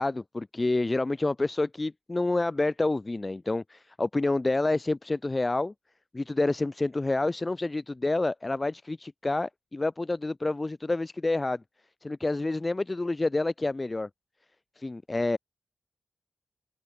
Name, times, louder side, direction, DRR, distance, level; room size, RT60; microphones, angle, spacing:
voice 1, 0.0-5.7 6.1-11.6 12.0-14.1 14.8-15.4, left 2 dB, 30° left, 2.5 m, -28 dB
open air
cardioid pair, 55°, 0 cm